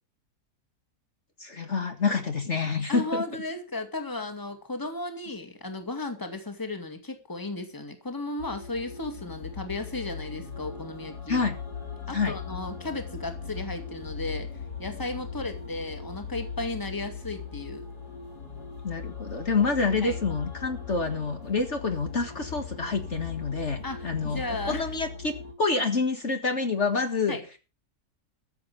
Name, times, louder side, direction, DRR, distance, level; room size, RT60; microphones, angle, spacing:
voice 1, 1.4-3.2 11.3-11.6 12.1-12.3 18.8-27.4, left 4 dB, 50° left, 6 dB, 2.0 m, -27 dB
voice 2, 2.9-11.4 12.1-14.5 14.8-17.8 20.0-20.2 23.8-24.9 27.3-27.4, left 2 dB, 15° left, 6 dB, 2.2 m, -35 dB
sound 1, 8.4-25.5, left 6 dB, 85° left, 4.2 m, -39 dB
14.0 x 7.7 x 6.8 m, 0.33 s
omnidirectional pair, 1.6 m